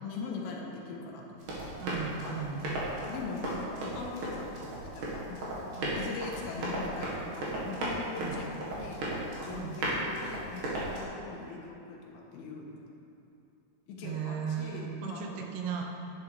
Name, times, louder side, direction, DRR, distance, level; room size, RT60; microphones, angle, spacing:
voice 1, 0.0-1.7 2.2-12.7 13.9-15.5, left 4 dB, 70° left, -1 dB, 2.9 m, -41 dB
Run, 1.4-11.0, right 1 dB, 60° right, 3.2 m, -36 dB
voice 2, 1.8-2.6 5.8-5.9 8.2-8.4 9.5-9.8 14.0-15.9, right 7 dB, 80° right, 1 dB, 2.8 m, -36 dB
10.5 x 10.5 x 3.5 m, 2.9 s
omnidirectional pair, 4.7 m